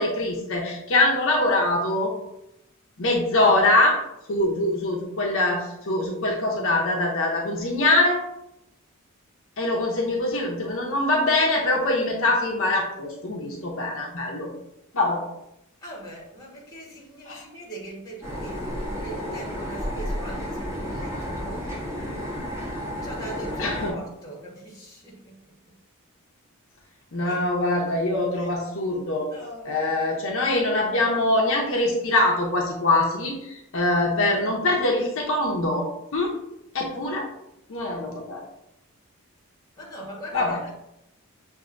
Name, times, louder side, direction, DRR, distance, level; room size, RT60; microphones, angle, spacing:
voice 1, 0.0-2.1 3.0-4.0 4.3-8.2 9.6-14.5 14.9-15.2 17.3-17.4 23.6-24.0 27.1-29.3 29.6-36.3 36.7-37.3 37.7-38.4 40.3-40.6, left 2 dB, 60° left, -1 dB, 0.7 m, -23 dB
voice 2, 15.8-21.7 23.0-25.4 27.2-27.4 28.4-28.5 29.3-30.1 39.8-40.7, right 1 dB, 15° left, -3 dB, 1.2 m, -41 dB
sound 1, 18.2-23.9, equal, 10° right, 0.9 m, -32 dB
6.3 x 2.6 x 2.4 m, 0.85 s
head